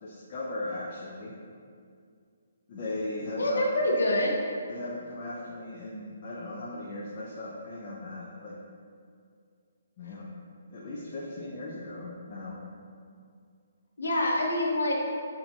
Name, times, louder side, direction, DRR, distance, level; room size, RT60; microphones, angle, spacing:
voice 1, 0.0-1.3 2.7-3.7 4.7-8.6 10.0-10.3 10.7-12.6, left 2 dB, 35° left, -5 dB, 0.5 m, -38 dB
voice 2, 3.4-4.3 14.0-14.9, left 1 dB, 90° left, -1 dB, 0.7 m, -26 dB
6.7 x 2.7 x 2.7 m, 2.3 s
hypercardioid pair, 160°, 0 cm